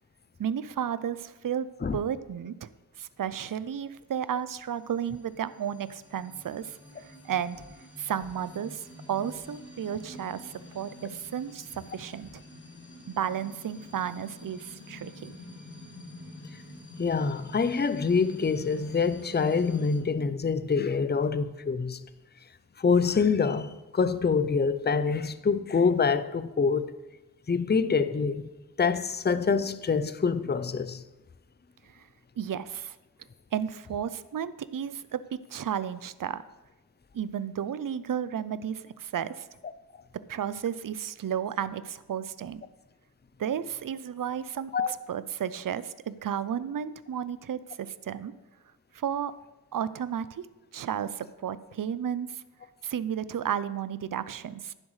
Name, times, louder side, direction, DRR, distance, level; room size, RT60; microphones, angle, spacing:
voice 1, 0.4-1.7 1.9-2.7 3.0-7.6 8.0-12.4 13.1-15.3 31.9-32.1 32.4-33.0 33.5-36.4 37.1-39.5 40.3-42.6 43.4-48.3 48.9-49.3 49.7-50.5 50.7-52.4 52.8-54.7, right 9 dB, 55° right, 0.5 m, -33 dB
sound 1, 4.3-20.0, left 1 dB, 45° left, 2.9 m, -48 dB
voice 2, 17.0-22.0 22.8-26.9 27.5-28.5 28.8-31.0 44.7-44.9, left 5 dB, 25° left, 0.5 m, -26 dB
11.0 x 10.0 x 3.2 m
wide cardioid pair, 50°, 39 cm